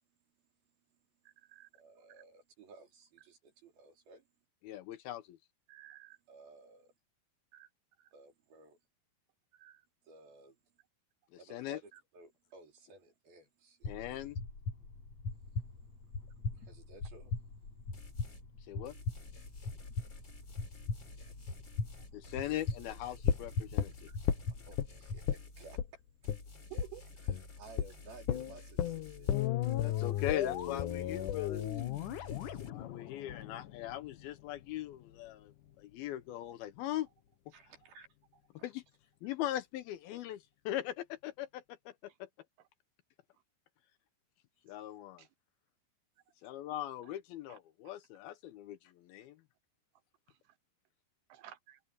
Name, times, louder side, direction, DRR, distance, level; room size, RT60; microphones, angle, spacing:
voice 1, 1.7-4.3 6.3-6.9 8.1-8.8 10.0-10.6 11.4-14.0 16.6-17.4 21.3-21.4 22.6-22.7 23.1-23.2 24.5-26.0 27.2-29.4 30.0-30.1 31.7-31.9 37.5-38.7 44.7-44.8, right 3 dB, 60° right, 6.3 m, -57 dB
voice 2, 4.6-5.4 11.5-11.8 13.9-14.4 18.7-19.0 22.1-24.1 29.7-31.6 32.7-37.1 38.6-38.8 39.2-42.3 44.7-45.2 46.4-49.4, left 13 dB, 80° left, 2.4 m, -40 dB
voice 3, 5.7-6.2 7.5-7.7 8.0-8.1 9.5-9.8 22.5-22.6 26.7-27.0 45.2-45.3 47.5-47.6 51.3-51.8, right 14 dB, 80° right, 2.6 m, -52 dB
sound 1, 13.8-25.3, left 3 dB, 40° left, 7.3 m, -41 dB
sound 2, 17.9-18.5 18.8-25.8 26.2-32.7, left 2 dB, 25° left, 5.3 m, -53 dB
sound 3, 23.3-24.9 25.3-25.5 25.8-25.9 26.3-26.4 26.8-26.9 27.3-27.5 27.8-27.9 28.3-34.3 34.6-34.7, left 10 dB, 60° left, 2.4 m, -34 dB
omnidirectional pair, 4.8 m